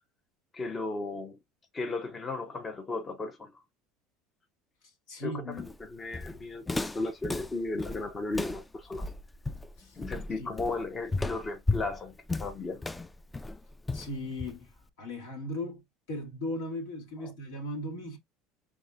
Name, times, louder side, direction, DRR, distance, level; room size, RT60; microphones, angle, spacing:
voice 1, 0.5-1.4 1.7-3.6 5.2-9.1 9.9-12.8 17.2-17.3, left 3 dB, 30° left, 0.9 m, -35 dB
voice 2, 5.1-5.7 9.8-10.0 10.4-10.5 13.9-14.7 15.0-15.8 16.1-18.2, left 1 dB, 80° left, 2.1 m, -37 dB
Walk footsteps, 5.6-14.8, left 3 dB, 15° left, 0.4 m, -35 dB
5.2 x 3.6 x 2.3 m
hypercardioid pair, 80°, 0 cm